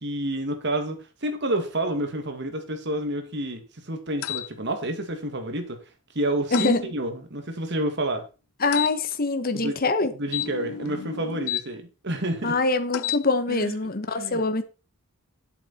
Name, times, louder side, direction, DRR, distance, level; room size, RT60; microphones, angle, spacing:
voice 1, 0.0-5.8 6.1-8.2 9.5-9.8 10.1-12.6 13.5-13.7 14.2-14.4, right 1 dB, 55° right, 2.1 m, -29 dB
sound 1, 4.2-4.5 6.5-6.8 8.7-8.9 10.3-11.6 12.9-13.2, left 11 dB, 75° left, 0.5 m, -30 dB
voice 2, 6.5-6.9 8.6-10.1 12.4-14.6, left 3 dB, 45° left, 1.1 m, -24 dB
10.5 x 8.2 x 4.3 m
head